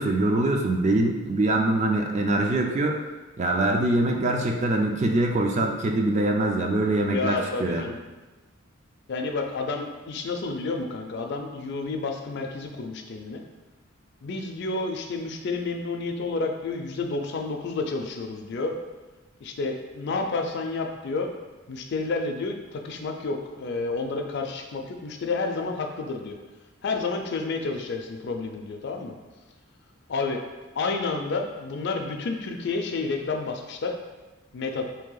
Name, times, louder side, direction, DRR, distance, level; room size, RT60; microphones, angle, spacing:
voice 1, 0.0-3.0 3.4-7.8, right 2 dB, 35° right, 2 dB, 0.4 m, -23 dB
voice 2, 7.1-8.0 9.1-13.4 14.2-18.8 19.4-21.3 21.7-26.4 26.8-29.1 30.1-30.4 30.8-33.9 34.5-34.8, left 3 dB, 55° left, 4 dB, 0.4 m, -30 dB
3.3 x 2.7 x 3.8 m, 1.2 s
head